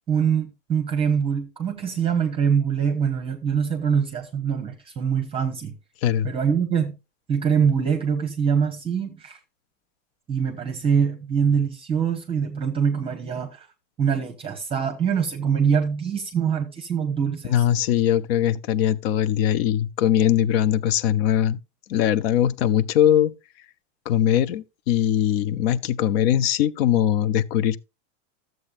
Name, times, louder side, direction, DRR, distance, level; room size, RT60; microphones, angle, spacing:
voice 1, 0.1-5.7 6.2-6.9 7.3-9.4 10.3-13.7 14.0-17.6, right 7 dB, 15° right, 1.0 m, -24 dB
voice 2, 17.5-21.6 21.9-23.3 24.1-27.8, left 11 dB, 50° left, 0.6 m, -21 dB
13.0 x 7.7 x 2.5 m
supercardioid pair, 155°, 38 cm